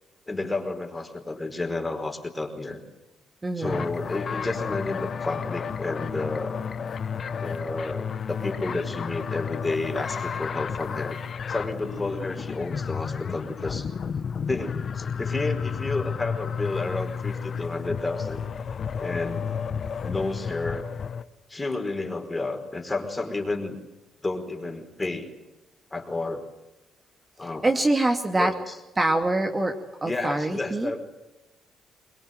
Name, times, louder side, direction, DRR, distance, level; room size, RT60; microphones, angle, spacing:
voice 1, 0.3-2.8 3.6-6.6 7.4-11.2 11.5-13.9 14.5-18.4 19.0-19.5 20.0-20.8 21.5-23.8 24.2-25.3 25.9-26.5 27.4-27.7 28.4-28.7 30.0-31.0, left 2 dB, 20° left, 5 dB, 4.8 m, -31 dB
voice 2, 3.4-3.8 27.4-28.5 29.0-30.9, right 2 dB, 20° right, 4 dB, 2.6 m, -25 dB
sound 1, 3.6-21.2, left 6 dB, 50° left, 1.3 m, -32 dB
23.5 x 21.5 x 9.3 m, 1.0 s
cardioid pair, 90°, 0 cm